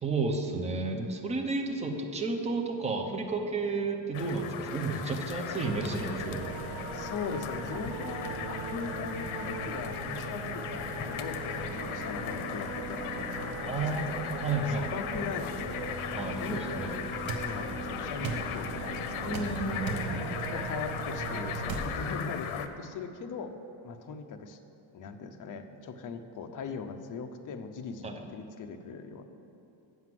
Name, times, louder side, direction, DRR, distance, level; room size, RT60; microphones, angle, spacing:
voice 1, 0.0-6.4 13.6-15.0 16.1-17.0 19.2-20.3 28.0-28.2, right 3 dB, 15° right, 3 dB, 0.5 m, -32 dB
sound 1, 4.1-22.7, left 8 dB, 85° left, 0.7 m, -38 dB
sound 2, 5.6-21.6, right 5 dB, 80° right, 1.0 m, -40 dB
voice 2, 6.9-16.0 16.3-17.2 17.4-19.5 20.5-23.5 23.8-24.6 24.9-29.2, left 5 dB, 40° left, 6 dB, 0.6 m, -40 dB
sound 3, 17.3-17.5 18.2-18.5 19.3-19.5 19.9-20.1 21.7-21.9, right 5 dB, 45° right, 0.9 m, -35 dB
7.8 x 5.9 x 7.5 m, 2.8 s
cardioid pair, 170°, 48 cm